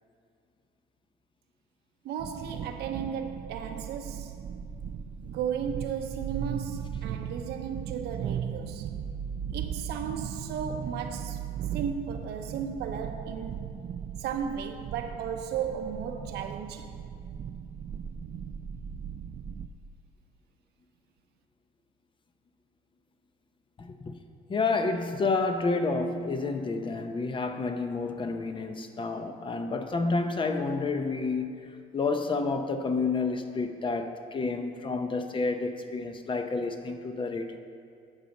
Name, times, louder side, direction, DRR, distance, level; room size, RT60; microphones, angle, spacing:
voice 1, 2.0-4.3 5.2-8.9 9.5-11.4 11.7-13.7 14.2-16.9, right 7 dB, 75° right, 0.9 m, -35 dB
sound 1, 2.2-19.7, right 8 dB, 40° right, 0.4 m, -37 dB
voice 2, 23.8-24.1 24.5-31.5 31.9-37.6, left 3 dB, 30° left, 0.7 m, -29 dB
9.7 x 6.5 x 5.2 m
cardioid pair, 110°, 17 cm